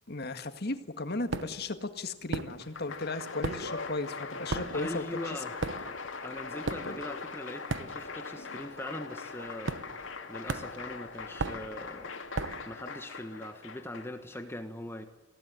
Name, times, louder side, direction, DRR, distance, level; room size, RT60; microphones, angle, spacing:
voice 1, 0.1-5.0 6.9-7.0, left 2 dB, 55° left, 9 dB, 1.8 m, -35 dB
sound 1, 1.3-1.7 2.3-3.0 3.2-8.3 8.6-8.9 9.7-10.2 10.5-12.7, right 3 dB, 70° right, 1.0 m, -37 dB
Applause, 2.5-14.4, left 4 dB, 80° left, 2.7 m, -41 dB
voice 2, 4.7-5.5 6.2-9.8 10.3-12.1 12.7-15.0, left 1 dB, 10° left, 7 dB, 1.4 m, -41 dB
23.0 x 17.0 x 9.1 m, 1.2 s
head